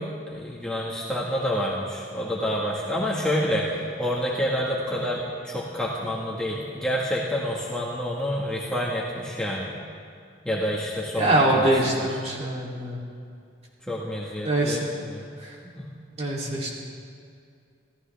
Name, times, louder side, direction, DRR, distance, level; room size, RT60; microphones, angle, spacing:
voice 1, 0.0-9.8 10.4-12.1 13.9-15.3 15.6-15.8 16.4-16.6, equal, 5° left, -5 dB, 1.6 m, -28 dB
voice 2, 11.2-13.0 14.4-14.8 15.4-15.5 16.2-16.7, right 1 dB, 35° right, -4 dB, 3.0 m, -23 dB
26.5 x 15.5 x 3.4 m, 2.3 s
head